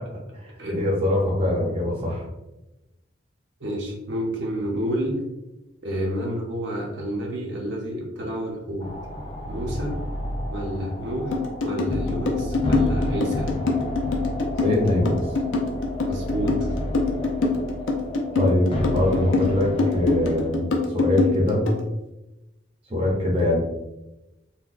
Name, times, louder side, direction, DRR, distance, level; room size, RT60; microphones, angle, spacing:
voice 1, 0.7-2.3 14.6-15.2 18.4-21.7 22.9-23.6, left 1 dB, 30° right, -3 dB, 0.7 m, -23 dB
voice 2, 3.6-5.2 5.8-8.9 9.4-9.9 10.5-13.5 16.1-16.7, equal, 70° right, -2 dB, 0.7 m, -29 dB
sound 1, 8.8-20.5, left 1 dB, 25° left, 0.4 m, -31 dB
sound 2, 11.3-21.8, left 3 dB, 80° left, 0.5 m, -24 dB
4.0 x 2.1 x 2.5 m, 0.96 s
head